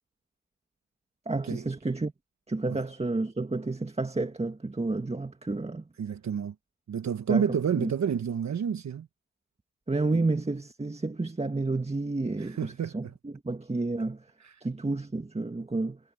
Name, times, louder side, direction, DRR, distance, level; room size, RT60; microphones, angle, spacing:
voice 1, 1.3-2.1 2.5-5.9 7.3-7.5 7.8-7.9 9.9-14.2 14.6-16.0, right 3 dB, 20° right, 1.8 m, -30 dB
voice 2, 6.0-6.5 6.9-9.1 10.1-10.2 12.4-13.1 14.4-14.6, right 7 dB, 55° right, 1.2 m, -30 dB
cardioid pair, 70°, 33 cm